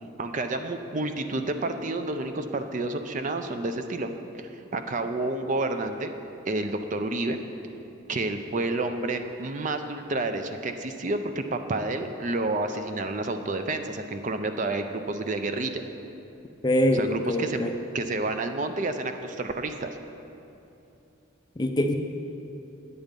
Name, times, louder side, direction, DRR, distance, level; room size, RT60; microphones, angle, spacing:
voice 1, 0.2-6.1 6.5-7.4 8.1-15.8 16.9-17.7 17.9-20.0, right 2 dB, 35° right, 7 dB, 0.4 m, -30 dB
voice 2, 16.6-17.8 21.6-21.9, equal, 20° left, 4 dB, 0.5 m, -24 dB
8.9 x 8.1 x 5.2 m, 2.8 s
head